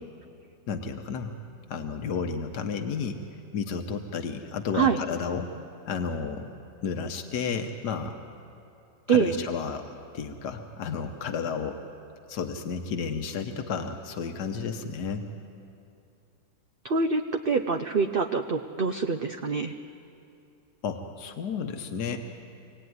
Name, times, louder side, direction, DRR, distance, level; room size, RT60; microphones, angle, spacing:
voice 1, 0.7-1.3 1.7-3.2 3.5-5.5 5.9-6.5 6.8-8.2 9.1-11.8 12.3-15.3 20.8-22.2, left 5 dB, 80° left, 5 dB, 1.7 m, -32 dB
voice 2, 16.8-19.7, right 5 dB, 45° right, 5 dB, 0.8 m, -25 dB
26.5 x 18.0 x 9.6 m, 2.7 s
omnidirectional pair, 1.7 m